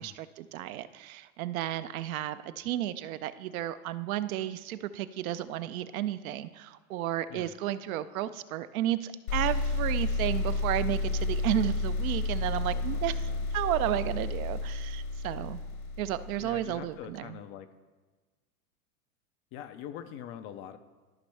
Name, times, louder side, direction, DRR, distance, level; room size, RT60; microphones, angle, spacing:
voice 1, 0.0-15.6 16.0-17.4, right 13 dB, 65° right, 13 dB, 0.6 m, -33 dB
sound 1, 9.3-16.8, left 3 dB, 75° left, 1.4 m, -31 dB
voice 2, 12.7-13.4 16.4-17.7 19.5-20.8, left 10 dB, 30° left, 10 dB, 0.4 m, -43 dB
13.5 x 5.3 x 3.3 m, 1.3 s
hypercardioid pair, 105°, 45 cm